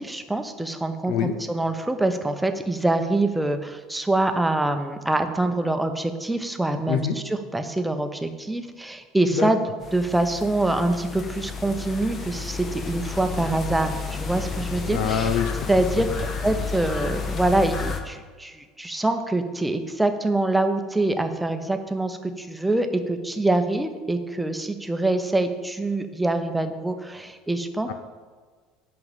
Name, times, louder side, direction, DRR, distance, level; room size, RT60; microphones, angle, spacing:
voice 1, 0.0-1.1 1.5-9.6 9.9-15.3 15.7-16.1 16.4-27.9, right 2 dB, 5° right, 7 dB, 0.9 m, -25 dB
sound 1, 9.8-18.0, left 5 dB, 35° left, 1.2 m, -31 dB
voice 2, 14.9-15.7 27.9-28.0, left 8 dB, 55° left, 8 dB, 0.7 m, -25 dB
10.5 x 4.0 x 7.2 m, 1.5 s
figure-of-eight pair, 65°, 0 cm